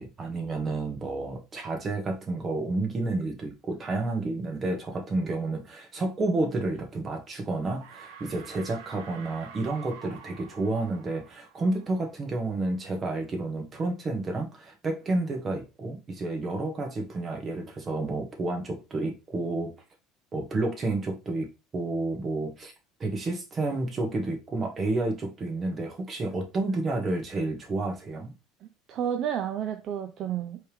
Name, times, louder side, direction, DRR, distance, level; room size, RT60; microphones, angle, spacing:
voice 1, 0.0-19.7 20.3-21.5 21.7-22.7 23.0-28.3, right 2 dB, 30° right, 1.2 m, -30 dB
sound 1, 7.1-7.5 7.8-12.3, right 7 dB, 90° right, 0.9 m, -48 dB
voice 2, 28.6-30.6, right 9 dB, 50° right, 0.5 m, -31 dB
4.4 x 3.2 x 3.4 m
cardioid pair, 125°, 0 cm